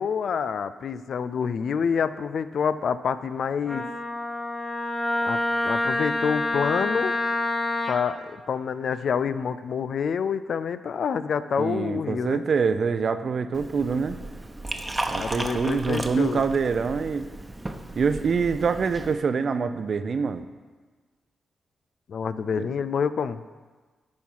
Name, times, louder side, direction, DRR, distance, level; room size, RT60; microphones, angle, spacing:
voice 1, 0.0-3.9 5.2-5.4 5.6-7.2 7.9-12.4 15.2-16.4 22.1-23.4, left 6 dB, 70° left, 13 dB, 0.4 m, -27 dB
Wind instrument woodwind instrument, 3.7-8.0, left 1 dB, 25° left, 1.4 m, -27 dB
voice 2, 11.6-14.2 15.1-17.3 18.0-20.5 22.6-22.7, right 5 dB, 60° right, 10 dB, 0.5 m, -25 dB
Liquid, 13.5-19.1, right 2 dB, 20° right, 1.0 m, -35 dB
10.5 x 4.4 x 5.5 m, 1.4 s
supercardioid pair, 40°, 0 cm